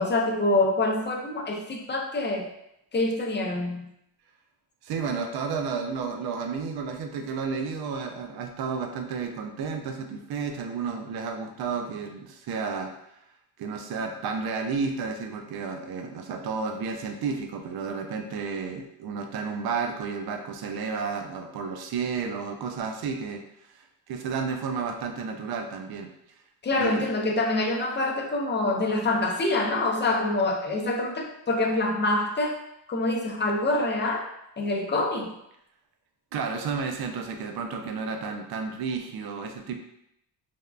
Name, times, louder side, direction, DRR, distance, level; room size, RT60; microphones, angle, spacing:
voice 1, 0.0-2.5 2.9-3.9 26.6-32.6 32.9-34.2 34.6-35.3, left 2 dB, 25° left, 1 dB, 0.5 m, -26 dB
voice 2, 4.8-12.9 13.6-23.4 23.7-26.1 26.7-27.1 36.3-39.8, right 5 dB, 60° right, 4 dB, 0.5 m, -32 dB
3.4 x 2.1 x 2.4 m, 0.79 s
cardioid pair, 75°, 43 cm